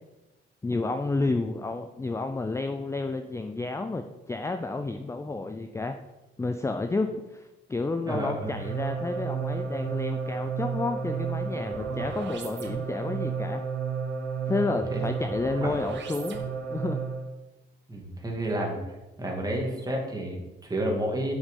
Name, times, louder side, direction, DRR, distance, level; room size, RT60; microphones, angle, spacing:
voice 1, 0.6-6.0 6.4-13.6 14.5-16.4 16.7-17.0, left 3 dB, 15° left, 7 dB, 0.5 m, -30 dB
voice 2, 8.1-8.5 14.9-15.0 15.6-15.8 17.9-18.8 19.2-21.3, right 1 dB, 20° right, -1 dB, 2.3 m, -30 dB
sound 1, 8.5-17.3, right 6 dB, 65° right, 1.3 m, -32 dB
6.4 x 6.0 x 5.4 m, 1.1 s
cardioid pair, 90°, 20 cm